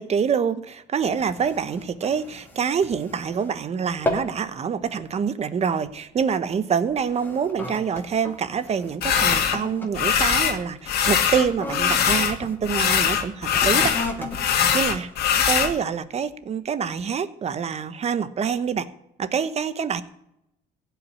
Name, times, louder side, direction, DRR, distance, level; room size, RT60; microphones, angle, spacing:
voice 1, 0.0-15.1 15.4-18.9 19.2-20.0, right 7 dB, 40° right, 13 dB, 1.0 m, -26 dB
sound 1, 1.0-3.6 3.9-4.4 4.8-5.1 5.8-6.0 6.8-12.6 13.4-15.7 16.3-16.4, left 2 dB, 10° left, 2.3 m, -36 dB
sound 2, 9.0-9.6 9.9-10.6 10.9-12.4 12.6-15.7, left 8 dB, 70° left, 2.1 m, -21 dB
15.5 x 5.9 x 9.8 m, 0.81 s
cardioid pair, 110°, 17 cm